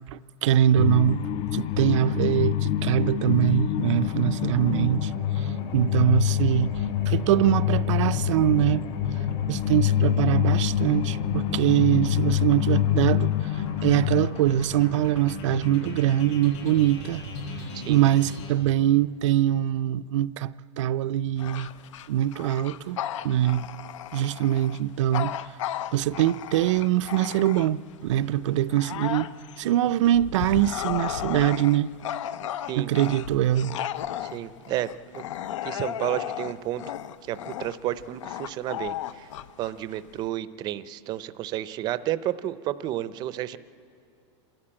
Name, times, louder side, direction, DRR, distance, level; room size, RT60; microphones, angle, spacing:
voice 1, 0.1-5.1 5.4-5.5 5.7-8.8 9.5-17.2 17.9-21.7 22.1-23.0 23.2-23.7 24.1-25.3 25.9-29.3 29.6-31.9 32.8-33.8, right 12 dB, 80° right, 0.5 m, -23 dB
sound 1, 0.8-14.3, left 13 dB, 30° left, 0.4 m, -26 dB
sound 2, 3.7-18.5, left 2 dB, 65° left, 7.7 m, -36 dB
Bark / Growling, 21.4-27.9 28.4-40.3, left 10 dB, 90° left, 0.7 m, -35 dB
voice 2, 34.2-35.2 35.6-36.8 37.2-39.3 39.6-43.6, right 13 dB, 25° right, 0.5 m, -31 dB
27.0 x 13.5 x 8.7 m
supercardioid pair, 160°, 16 cm